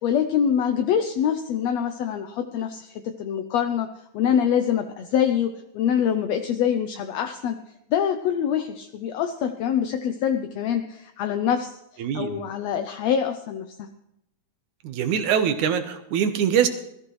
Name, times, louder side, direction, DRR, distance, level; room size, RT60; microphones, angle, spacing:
voice 1, 0.0-3.9 4.1-7.6 7.9-11.7 12.1-13.9, left 8 dB, 75° left, 6 dB, 1.6 m, -25 dB
voice 2, 12.0-12.4 14.8-16.7, right 8 dB, 70° right, 8 dB, 2.5 m, -23 dB
21.0 x 14.0 x 3.2 m, 0.82 s
omnidirectional pair, 3.7 m